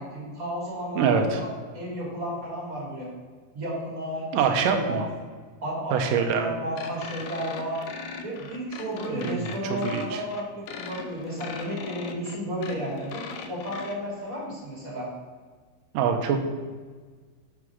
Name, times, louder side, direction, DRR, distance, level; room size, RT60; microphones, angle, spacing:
voice 1, 0.0-1.5 1.7-3.1 3.5-4.4 4.7-5.0 5.6-7.8 8.2-13.2 13.5-15.1, equal, 30° right, -5 dB, 2.3 m, -33 dB
voice 2, 1.0-1.4 4.3-5.1 5.9-6.5 9.1-9.5 9.8-10.2 15.9-16.4, right 6 dB, 80° right, 5 dB, 2.3 m, -24 dB
sound 1, 6.8-14.0, left 5 dB, 80° left, 2.1 m, -39 dB
6.0 x 4.9 x 6.0 m, 1.5 s
omnidirectional pair, 3.9 m